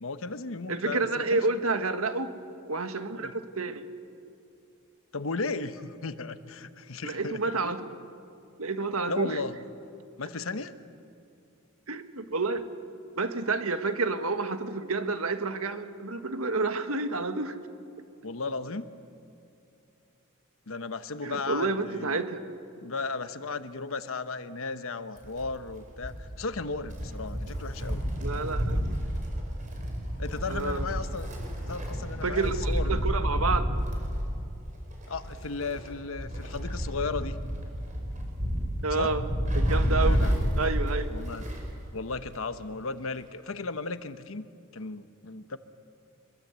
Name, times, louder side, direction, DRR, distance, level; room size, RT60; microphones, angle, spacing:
voice 1, 0.0-1.4 3.1-3.3 5.1-7.7 9.1-9.5 10.2-10.7 18.2-18.9 20.7-22.2 22.8-28.0 30.2-31.3 31.7-33.0 35.1-37.4 38.9-39.1 40.0-40.7 41.1-41.4 41.9-44.5 44.7-45.6, left 3 dB, 70° left, 11 dB, 1.1 m, -35 dB
voice 2, 0.7-2.3 2.7-3.8 7.0-7.8 8.6-9.4 11.9-12.7 13.2-17.6 21.2-22.4 28.2-28.8 30.5-30.9 32.2-33.7 38.8-39.2 39.5-40.3 40.6-41.1, right 3 dB, 80° right, 8 dB, 1.6 m, -29 dB
Wind, 25.2-41.8 42.1-42.2 43.2-43.3, equal, 35° right, 5.3 m, -30 dB
25.0 x 22.5 x 8.2 m, 2.7 s
head